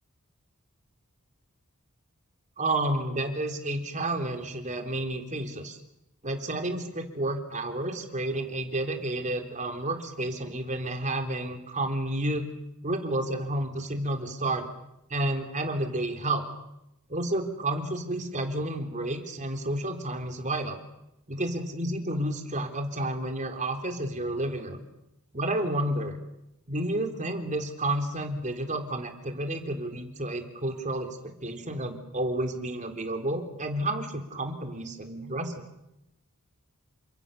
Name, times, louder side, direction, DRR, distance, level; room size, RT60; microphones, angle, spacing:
voice 1, 2.6-5.8 6.2-12.5 12.8-14.7 15.1-16.4 17.1-20.8 21.3-24.8 25.3-26.2 26.7-35.6, right 1 dB, 35° right, 6 dB, 3.6 m, -31 dB
29.5 x 26.0 x 7.0 m, 0.86 s
head